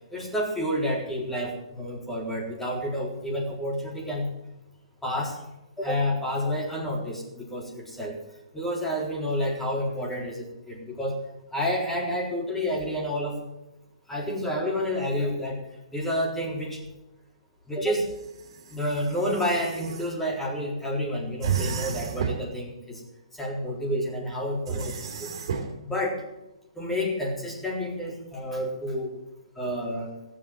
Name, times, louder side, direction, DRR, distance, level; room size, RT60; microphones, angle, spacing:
voice 1, 0.1-4.3 5.0-5.4 5.8-8.2 8.5-11.2 11.5-13.4 14.1-15.6 15.9-16.8 17.7-18.1 18.7-23.0 23.4-25.3 25.8-26.2 26.8-29.1 29.6-30.1, equal, 5° left, -2 dB, 4.0 m, -29 dB
sound 1, 18.0-20.1 21.4-22.5 24.6-25.7, right 7 dB, 55° right, 3.0 m, -32 dB
16.5 x 7.7 x 7.7 m, 0.93 s
hypercardioid pair, 130°, 3 cm